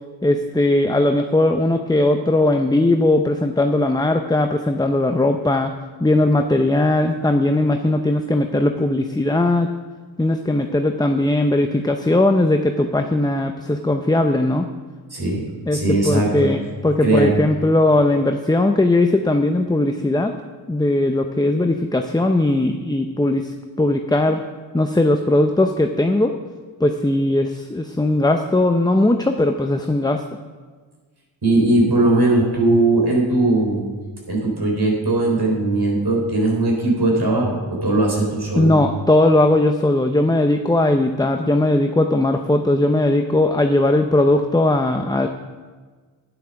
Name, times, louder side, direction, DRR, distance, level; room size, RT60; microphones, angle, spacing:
voice 1, 0.2-5.7 6.0-9.7 10.2-14.7 15.7-20.3 20.7-23.5 23.8-24.4 24.7-26.3 26.8-30.2 38.5-45.3, left 2 dB, 10° left, 5 dB, 0.6 m, -18 dB
voice 2, 15.1-15.5 15.7-16.5 17.0-17.3 31.4-33.9 34.3-38.7, right 2 dB, 55° right, -2 dB, 4.2 m, -19 dB
10.0 x 9.1 x 5.8 m, 1.4 s
cardioid pair, 55°, 46 cm